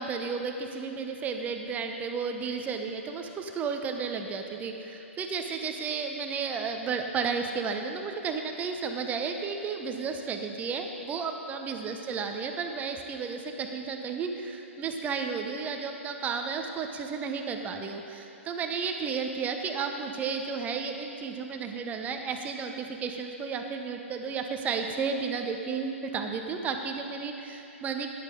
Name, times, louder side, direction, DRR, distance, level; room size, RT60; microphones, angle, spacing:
voice 1, 0.0-28.1, right 5 dB, 20° right, 5 dB, 0.9 m, -33 dB
14.0 x 10.5 x 3.9 m, 2.8 s
figure-of-eight pair, 115°, 7 cm